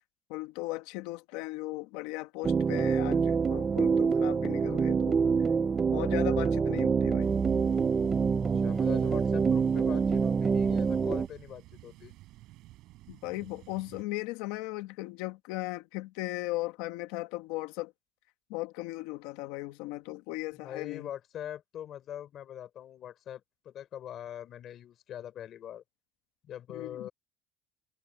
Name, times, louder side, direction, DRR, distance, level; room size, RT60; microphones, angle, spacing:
voice 1, 0.3-5.2 5.9-7.3 13.1-17.9 18.5-21.1 26.7-27.1, left 19 dB, 75° left, 1.4 m, -37 dB
sound 1, 2.4-11.3, right 5 dB, 20° right, 0.5 m, -26 dB
sound 2, 7.2-14.0, right 18 dB, 55° right, 7.1 m, -53 dB
voice 2, 8.4-12.1 20.5-25.8 26.4-27.1, left 10 dB, 35° left, 4.1 m, -43 dB
cardioid pair, 175°, 0 cm